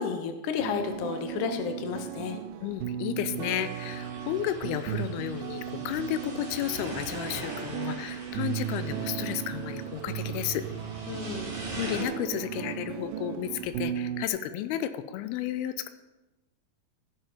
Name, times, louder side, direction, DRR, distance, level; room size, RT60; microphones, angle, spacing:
voice 1, 0.0-2.4 11.1-11.5, left 6 dB, 65° left, 7 dB, 2.2 m, -32 dB
sound 1, 0.6-14.3, right 10 dB, 80° right, 2.0 m, -36 dB
voice 2, 2.6-10.7 11.8-15.9, left 11 dB, 90° left, 11 dB, 2.6 m, -32 dB
sound 2, 3.3-12.0, right 2 dB, 35° right, 3.3 m, -42 dB
15.5 x 7.5 x 5.0 m, 1.0 s
omnidirectional pair, 4.4 m